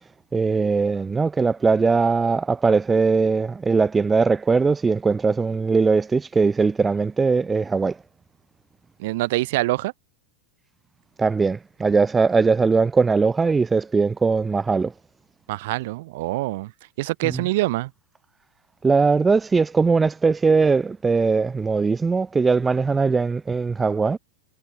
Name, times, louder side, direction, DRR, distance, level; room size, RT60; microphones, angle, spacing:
voice 1, 0.3-8.0 11.2-14.9 18.8-24.2, right 4 dB, 15° right, 0.4 m, -20 dB
voice 2, 9.0-9.9 15.5-16.7 17.0-17.9, right 19 dB, 50° right, 1.6 m, -25 dB
figure-of-eight pair, 90°, 0 cm